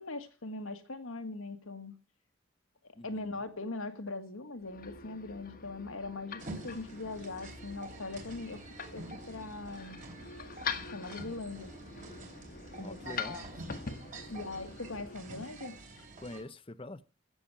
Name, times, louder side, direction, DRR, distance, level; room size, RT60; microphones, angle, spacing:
voice 1, 0.0-1.9 3.0-8.6 8.9-10.0 10.9-11.7 12.7-13.4 14.3-15.8, left 3 dB, 85° left, 1.9 m, -41 dB
voice 2, 3.0-3.4 12.8-13.4 16.2-17.0, left 2 dB, 25° left, 0.7 m, -45 dB
sound 1, 4.6-15.2, left 5 dB, 45° left, 1.4 m, -44 dB
sound 2, 6.4-16.4, right 2 dB, 40° right, 3.4 m, -48 dB
16.0 x 7.1 x 8.8 m
head